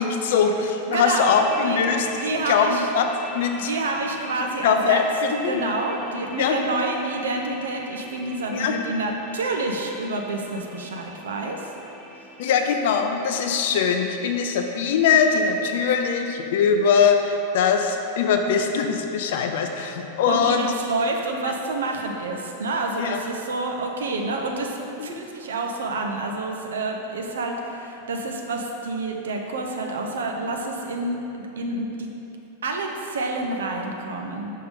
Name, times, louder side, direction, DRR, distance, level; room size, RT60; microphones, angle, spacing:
voice 1, 0.0-3.1 3.3-3.7 4.6-5.6 6.2-6.6 8.5-8.8 12.4-20.7 23.0-23.2 25.0-25.2, left 6 dB, 55° left, 5 dB, 0.5 m, -22 dB
voice 2, 0.9-1.8 2.2-2.9 3.5-5.0 5.4-11.7 20.3-31.2 31.6-32.1 32.6-34.5, right 2 dB, 65° right, 2 dB, 0.6 m, -28 dB
sound 1, 1.2-15.7, equal, ahead, 0.6 m, -43 dB
5.8 x 3.6 x 5.3 m, 2.9 s
figure-of-eight pair, 90°, 0 cm